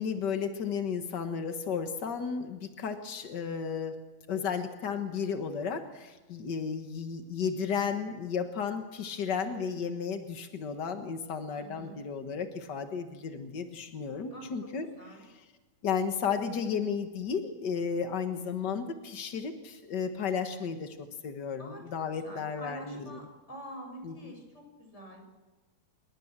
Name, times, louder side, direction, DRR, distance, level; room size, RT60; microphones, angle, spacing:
voice 1, 0.0-3.9 4.3-14.9 15.8-23.2 24.0-24.3, left 6 dB, 75° left, 7 dB, 0.9 m, -33 dB
voice 2, 11.5-12.0 14.3-14.7 15.0-15.2 21.6-25.2, equal, 15° left, 3 dB, 6.4 m, -47 dB
26.5 x 22.0 x 7.5 m, 1.2 s
omnidirectional pair, 4.3 m